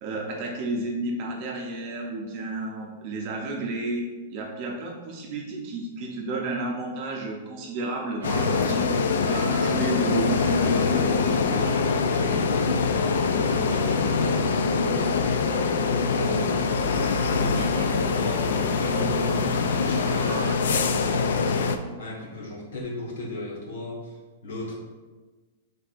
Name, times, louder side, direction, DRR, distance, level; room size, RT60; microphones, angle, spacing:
voice 1, 0.0-4.0 4.3-8.9 9.3-11.1, right 2 dB, 30° right, -1 dB, 0.6 m, -31 dB
sound 1, 8.2-21.8, left 4 dB, 75° left, 0.4 m, -24 dB
sound 2, 8.2-20.6, right 5 dB, 80° right, 0.4 m, -42 dB
voice 2, 12.2-15.5 16.0-24.7, left 1 dB, 60° left, -3 dB, 1.4 m, -37 dB
6.0 x 3.3 x 2.5 m, 1.3 s
supercardioid pair, 180°, 0 cm